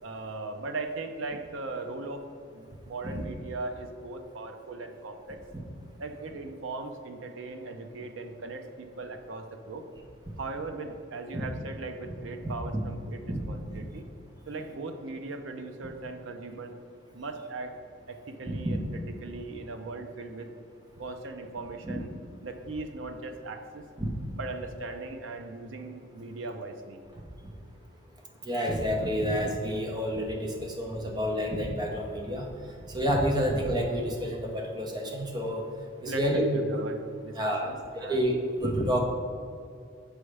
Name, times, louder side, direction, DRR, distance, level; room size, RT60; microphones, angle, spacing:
voice 1, 0.0-2.2 2.5-5.4 6.0-9.9 10.4-14.1 14.5-16.7 17.1-17.7 18.1-20.5 21.0-22.1 22.4-23.9 24.3-27.0 36.1-38.2, right 3 dB, 75° right, 6 dB, 0.5 m, -39 dB
voice 2, 28.5-32.5 32.9-35.6 36.0-36.4 37.4-39.0, equal, 20° right, 1 dB, 0.6 m, -29 dB
6.3 x 4.8 x 3.3 m, 2.4 s
head